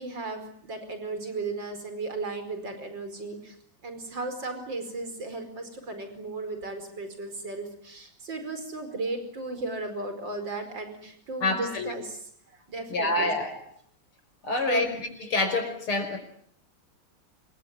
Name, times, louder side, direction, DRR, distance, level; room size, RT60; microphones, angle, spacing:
voice 1, 0.0-3.6 3.8-13.3 14.7-14.9, right 3 dB, 55° right, 8 dB, 5.6 m, -35 dB
voice 2, 11.4-11.9 12.9-13.6 14.4-15.0 15.3-16.2, left 2 dB, 80° left, 7 dB, 6.0 m, -27 dB
27.0 x 22.5 x 9.7 m, 0.65 s
omnidirectional pair, 2.3 m